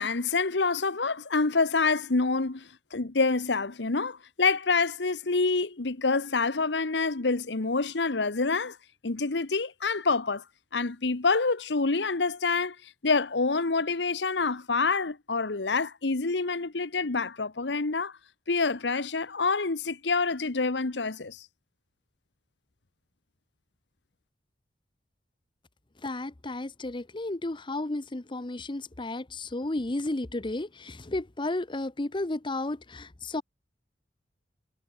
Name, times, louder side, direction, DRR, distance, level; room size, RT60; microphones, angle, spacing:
voice 1, 0.0-8.8 9.0-10.4 10.7-12.8 13.0-18.1 18.5-21.4, left 4 dB, 75° left, 1.2 m, -27 dB
voice 2, 26.0-33.4, left 2 dB, 30° left, 0.9 m, -33 dB
head